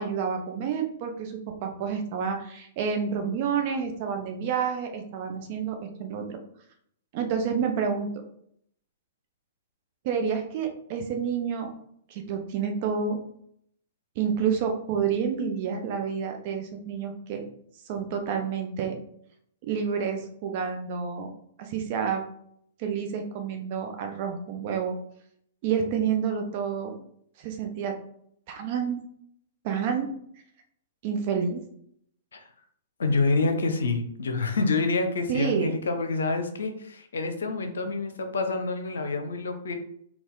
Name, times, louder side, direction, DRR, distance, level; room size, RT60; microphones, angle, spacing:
voice 1, 0.0-6.4 7.1-8.1 10.0-11.7 12.1-13.2 14.2-17.4 17.9-19.0 19.7-21.3 21.6-22.2 22.8-25.0 25.6-27.0 27.4-27.9 28.5-29.0 29.6-30.1 31.0-31.6 35.3-35.7, right 6 dB, 45° right, 5 dB, 0.9 m, -29 dB
voice 2, 33.0-39.8, left 3 dB, 70° left, 7 dB, 0.7 m, -27 dB
4.3 x 2.4 x 3.8 m, 0.66 s
figure-of-eight pair, 110°, 0 cm